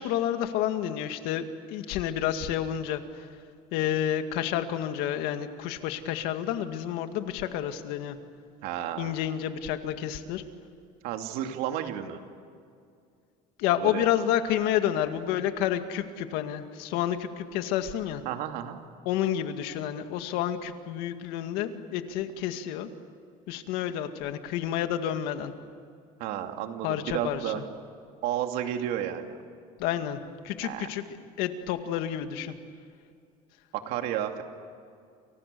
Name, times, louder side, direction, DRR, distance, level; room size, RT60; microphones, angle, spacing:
voice 1, 0.0-3.2 3.7-8.2 9.0-10.4 13.6-18.2 19.1-22.9 23.5-25.5 26.8-27.5 29.8-31.0 31.4-32.5, left 10 dB, 85° left, 7 dB, 2.1 m, -29 dB
voice 2, 8.6-9.1 11.0-12.2 13.8-14.0 18.2-18.8 26.2-27.6 28.2-29.3 30.6-30.9 33.7-34.4, right 11 dB, 75° right, 5 dB, 2.7 m, -32 dB
29.5 x 29.0 x 7.0 m, 2.3 s
cardioid pair, 160°, 16 cm